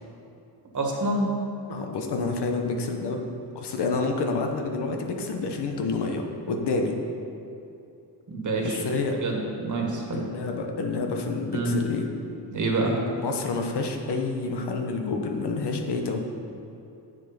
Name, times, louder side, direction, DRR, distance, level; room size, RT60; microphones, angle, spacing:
voice 1, 0.7-1.3 8.3-8.8 9.2-10.2 11.5-11.7 12.5-12.9, right 2 dB, 45° right, 0 dB, 1.8 m, -27 dB
voice 2, 1.7-3.2 3.5-7.0 8.6-9.2 10.1-12.1 13.1-16.2, left 3 dB, 65° left, 3 dB, 1.2 m, -28 dB
7.9 x 7.4 x 5.2 m, 2.9 s
cardioid pair, 95°, 43 cm